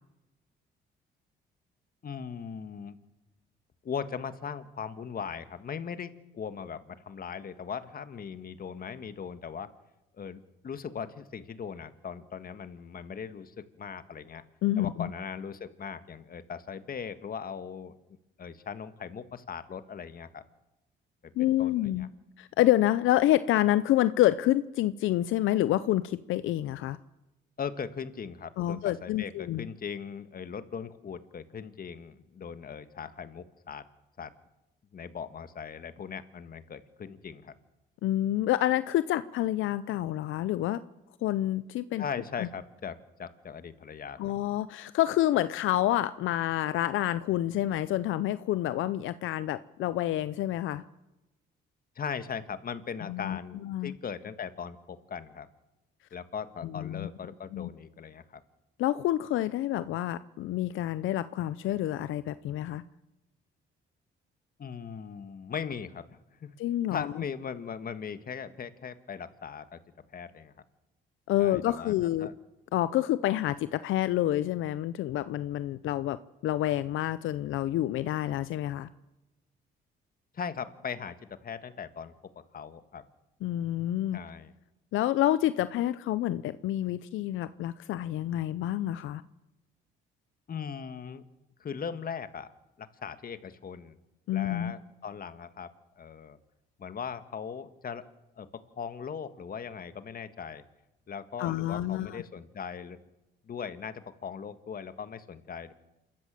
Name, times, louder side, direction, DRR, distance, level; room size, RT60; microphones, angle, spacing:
voice 1, 2.0-3.0 3.8-9.7 10.1-14.4 14.8-17.9 18.4-20.4 21.2-21.3 21.6-22.1 27.6-33.8 34.2-34.3 34.9-37.6 42.0-44.2 51.9-55.5 56.1-58.4 64.6-66.0 66.4-66.5 66.9-69.8 70.1-70.5 71.4-71.9 72.2-72.3 80.3-82.1 82.5-83.0 84.1-84.5 90.5-91.2 91.6-92.5 92.8-94.0 94.3-95.7 96.0-96.4 96.8-98.0 98.4-98.5 98.8-100.6 101.1-103.0 103.4-105.7, left 7 dB, 45° left, 11 dB, 1.6 m, -39 dB
voice 2, 14.6-15.1 21.4-22.1 22.4-27.0 28.6-29.7 38.0-40.8 41.2-42.0 42.4-42.5 44.2-50.8 53.1-53.4 53.6-53.9 56.7-57.1 57.5-57.7 58.8-62.8 66.6-67.1 71.3-72.3 72.7-78.9 83.4-84.2 84.9-89.2 94.3-94.7 101.4-102.2, left 14 dB, 85° left, 14 dB, 0.7 m, -28 dB
28.0 x 14.0 x 7.6 m, 0.98 s
cardioid pair, 90°, 20 cm